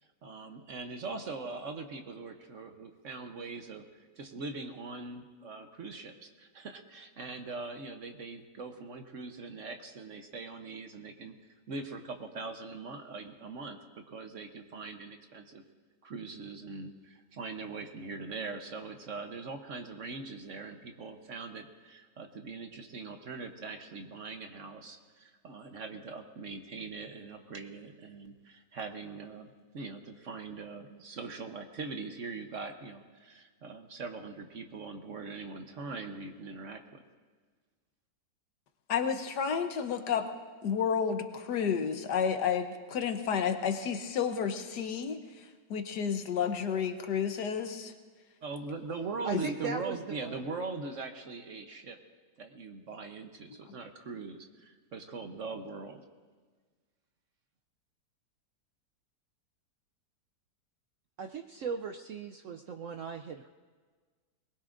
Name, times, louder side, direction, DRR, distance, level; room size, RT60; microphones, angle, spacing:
voice 1, 0.2-11.3 11.7-15.6 16.0-37.0 48.4-52.0 52.4-56.0, right 4 dB, 55° right, 5 dB, 1.1 m, -42 dB
voice 2, 38.9-40.3 40.6-45.4 45.7-47.9 49.3-49.4, left 7 dB, 70° left, 8 dB, 1.5 m, -31 dB
voice 3, 49.2-50.4 61.2-63.5, right 6 dB, 70° right, 5 dB, 0.7 m, -38 dB
22.0 x 20.0 x 2.6 m, 1.5 s
omnidirectional pair, 1.9 m